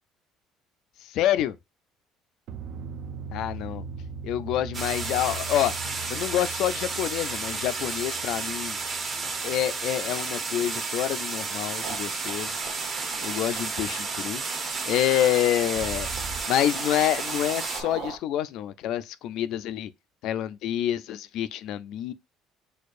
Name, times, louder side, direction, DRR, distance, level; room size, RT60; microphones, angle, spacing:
voice 1, 1.1-1.6 3.3-3.8 4.2-8.8 9.4-12.6 13.2-14.4 14.9-16.1 16.5-19.9 20.2-22.1, left 12 dB, 60° left, 0.3 m, -27 dB
sound 1, 2.5-10.8 15.8-16.4, right 4 dB, 55° right, 0.5 m, -40 dB
sound 2, 4.7-17.8, right 4 dB, 25° right, 0.8 m, -32 dB
sound 3, 11.8-18.2, right 6 dB, 85° right, 1.0 m, -42 dB
6.4 x 2.4 x 2.4 m
cardioid pair, 170°, 0 cm